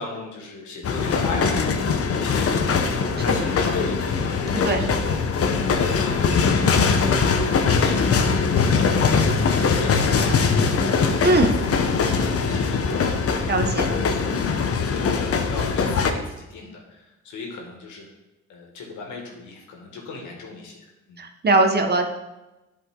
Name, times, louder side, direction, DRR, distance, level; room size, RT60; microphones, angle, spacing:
voice 1, 0.0-1.7 2.0-2.7 2.9-7.5 7.8-9.2 9.5-10.4 10.8-14.3 14.8-18.1 18.5-21.2, left 4 dB, 80° left, 0 dB, 2.0 m, -37 dB
sound 1, 0.8-16.1, left 5 dB, 50° left, 0.9 m, -21 dB
voice 2, 13.5-13.8 21.2-22.0, right 2 dB, 35° right, 5 dB, 1.0 m, -19 dB
10.5 x 4.9 x 3.8 m, 1.0 s
cardioid pair, 90°, 30 cm